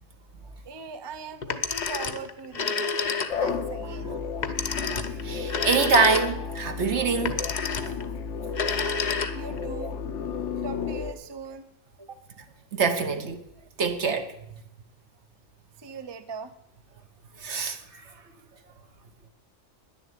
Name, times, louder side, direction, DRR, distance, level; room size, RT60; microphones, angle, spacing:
voice 1, 0.6-4.2 9.3-10.0 10.6-11.7 12.0-12.2 15.8-16.6, right 4 dB, 25° right, 0.6 m, -40 dB
Telephone, 1.4-3.6 4.4-6.6 7.2-8.0 8.5-9.6, left 5 dB, 40° left, 0.8 m, -29 dB
sound 1, 3.3-11.1, left 5 dB, 70° left, 1.1 m, -33 dB
voice 2, 5.2-7.4 12.7-13.4 13.8-14.3 17.4-18.1, right 5 dB, 60° right, 1.3 m, -25 dB
10.5 x 6.9 x 9.2 m
omnidirectional pair, 1.3 m